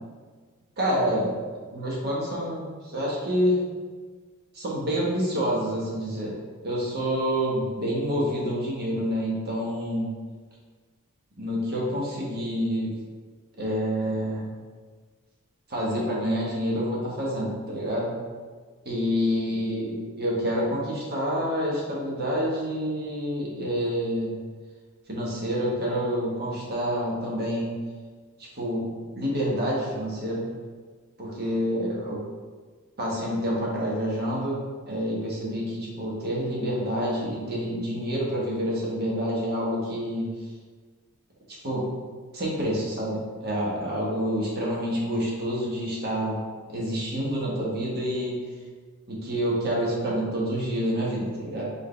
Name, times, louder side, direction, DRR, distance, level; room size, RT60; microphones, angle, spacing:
voice 1, 0.8-1.3 1.7-3.6 4.5-6.3 6.6-10.1 11.4-12.9 13.6-14.5 15.7-18.2 18.8-24.4 25.1-27.8 28.4-30.6 31.2-32.2 33.0-34.6 34.9-40.3 41.5-41.9 42.3-46.4 46.7-48.4 49.1-51.6, equal, 45° right, -4 dB, 1.2 m, -28 dB
4.6 x 3.5 x 3.2 m, 1.5 s
head